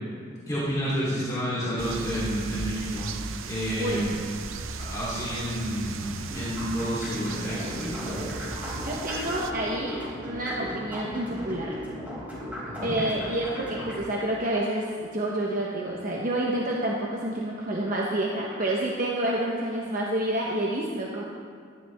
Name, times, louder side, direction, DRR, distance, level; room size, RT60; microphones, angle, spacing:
voice 1, 0.4-3.1 3.5-4.1 4.8-8.2 12.6-13.0, equal, 20° left, -9 dB, 3.3 m, -30 dB
sound 1, 1.8-9.5, right 4 dB, 85° right, 0.7 m, -37 dB
sound 2, 6.3-14.0, equal, 10° right, 3.9 m, -36 dB
voice 2, 8.8-11.8 12.8-21.2, right 1 dB, 40° right, -3 dB, 1.2 m, -28 dB
17.5 x 13.0 x 3.6 m, 2.1 s
head